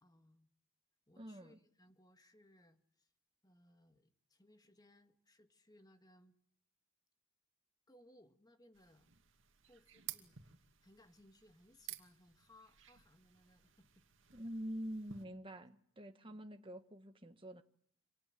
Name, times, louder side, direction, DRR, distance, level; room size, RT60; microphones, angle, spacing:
voice 1, 0.0-0.5 1.1-3.1 3.4-6.4 7.9-9.1 9.7-14.0 16.2-16.5, left 1 dB, 20° left, 2.0 m, -66 dB
voice 2, 1.2-1.6 14.3-17.6, equal, 25° right, 1.5 m, -46 dB
sound 1, 8.7-15.3, right 12 dB, 65° right, 2.5 m, -54 dB
28.0 x 26.0 x 7.7 m
head